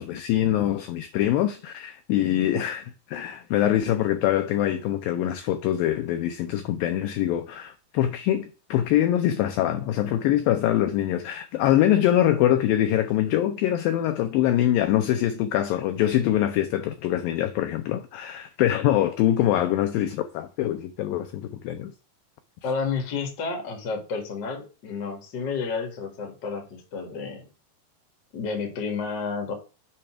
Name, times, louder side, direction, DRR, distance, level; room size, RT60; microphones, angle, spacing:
voice 1, 0.0-21.9, left 12 dB, 90° left, 2.0 m, -24 dB
voice 2, 22.6-27.4 28.3-29.5, left 5 dB, 60° left, 1.1 m, -31 dB
7.0 x 3.3 x 5.9 m
omnidirectional pair, 4.8 m